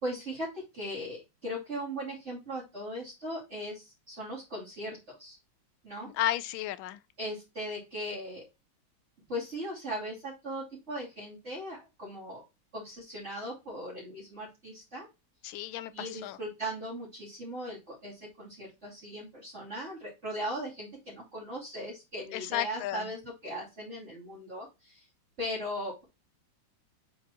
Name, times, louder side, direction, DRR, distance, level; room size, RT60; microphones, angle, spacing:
voice 1, 0.0-5.4 5.8-6.1 7.2-8.5 9.3-12.4 12.7-15.1 15.9-25.1 25.4-26.0, equal, 35° right, 3.1 m, -38 dB
voice 2, 6.1-7.0 15.4-16.4 22.3-23.0, left 13 dB, 80° left, 1.4 m, -33 dB
8.4 x 4.9 x 2.9 m
omnidirectional pair, 2.2 m